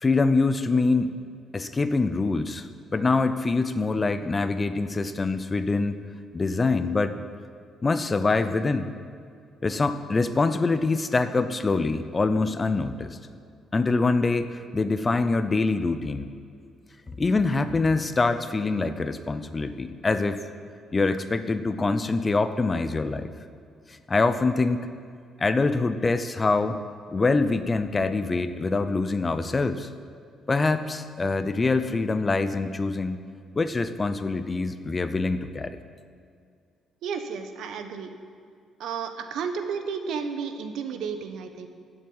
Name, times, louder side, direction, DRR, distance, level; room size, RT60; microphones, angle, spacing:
voice 1, 0.0-1.1 1.5-6.0 6.3-7.2 7.8-8.9 9.6-13.2 13.7-16.3 17.2-20.4 20.9-23.3 23.9-24.9 25.4-26.8 27.1-29.9 30.5-33.2 33.6-35.8, left 3 dB, 20° left, 11 dB, 0.6 m, -24 dB
voice 2, 37.0-38.1 38.8-41.7, right 6 dB, 70° right, 8 dB, 1.3 m, -32 dB
15.5 x 7.7 x 9.6 m, 2.3 s
cardioid pair, 170°, 0 cm